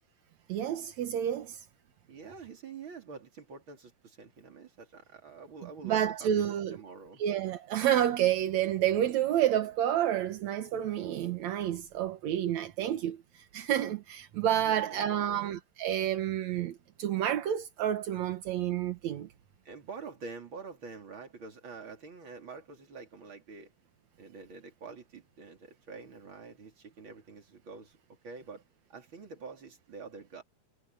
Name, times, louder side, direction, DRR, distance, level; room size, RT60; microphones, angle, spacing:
voice 1, 0.5-1.6 5.8-6.8 7.2-19.3, right 11 dB, 70° right, 1.8 m, -29 dB
voice 2, 2.1-7.2 14.6-15.5 19.6-23.7 24.2-28.0 28.2-28.6 28.9-30.4, right 4 dB, 30° right, 3.5 m, -47 dB
omnidirectional pair, 4.6 m